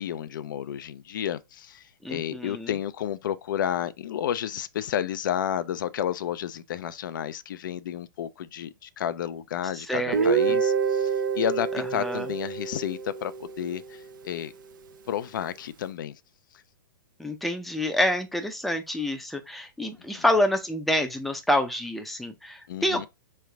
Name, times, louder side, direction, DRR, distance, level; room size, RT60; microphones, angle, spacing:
voice 1, 0.0-14.5 15.1-16.2 20.1-20.2 22.7-23.1, left 10 dB, 70° left, 0.5 m, -31 dB
voice 2, 2.0-2.7 9.9-10.3 12.0-12.3 17.2-23.1, left 1 dB, ahead, 0.6 m, -27 dB
Guitar, 10.1-14.0, right 6 dB, 70° right, 0.8 m, -27 dB
3.7 x 3.3 x 3.3 m
hypercardioid pair, 130°, 11 cm